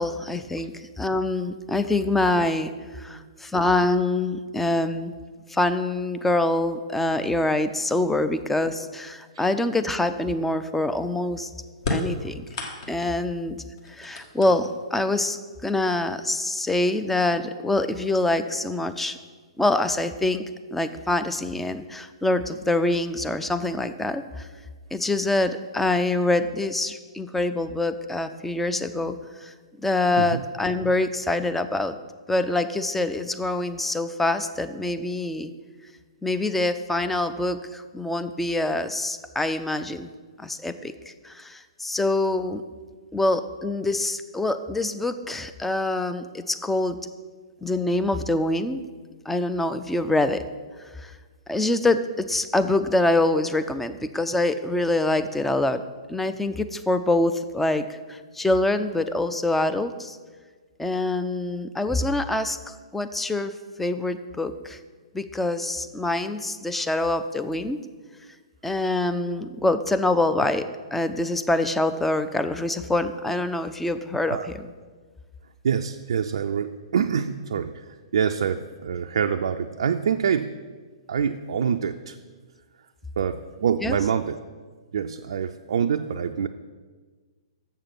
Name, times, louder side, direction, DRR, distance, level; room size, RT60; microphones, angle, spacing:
voice 1, 0.0-5.2 5.5-11.5 11.9-12.3 12.9-13.6 13.9-19.2 19.6-20.4 20.7-24.5 24.9-29.5 29.8-32.0 32.3-35.5 36.2-40.1 40.4-42.6 43.1-47.0 47.6-48.8 49.3-50.4 51.0-51.1 51.5-55.8 56.1-60.2 60.8-63.5 63.8-64.8 65.1-67.8 68.6-74.7 83.8-84.0, left 2 dB, 5° left, 9 dB, 0.4 m, -25 dB
voice 2, 4.4-4.8 9.3-9.5 12.2-12.3 30.2-30.4 74.3-74.5 75.6-80.5 81.1-82.2 83.2-84.4 84.9-86.5, right 7 dB, 65° right, 6 dB, 0.4 m, -26 dB
sound 1, 11.8-13.2 13.8-14.9 16.0-16.1 17.1-17.2 17.6-18.1, left 2 dB, 50° left, 1.6 m, -32 dB
7.2 x 6.6 x 5.9 m, 1.4 s
figure-of-eight pair, 115°, 3 cm